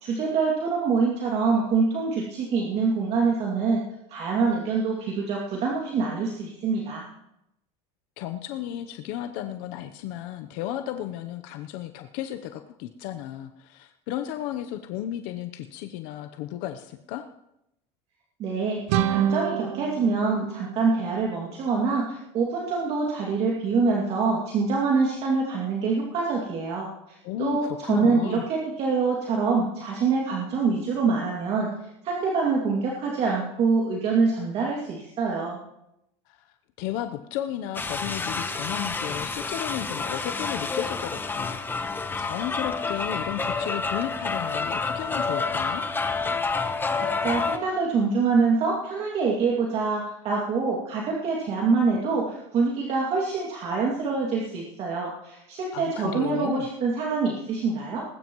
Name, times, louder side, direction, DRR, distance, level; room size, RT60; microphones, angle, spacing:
voice 1, 0.0-3.8 4.1-7.0 18.4-26.9 27.4-31.7 32.0-35.6 46.9-58.0, right 4 dB, 45° right, -3 dB, 2.4 m, -25 dB
voice 2, 8.2-17.3 27.2-28.5 36.3-45.9 55.7-56.7, left 12 dB, 70° left, 7 dB, 0.8 m, -34 dB
sound 1, 18.9-21.6, right 11 dB, 80° right, 1.0 m, -29 dB
sound 2, 37.7-47.6, left 4 dB, 15° left, 1.1 m, -29 dB
21.0 x 12.5 x 3.1 m, 0.84 s
supercardioid pair, 130°, 15 cm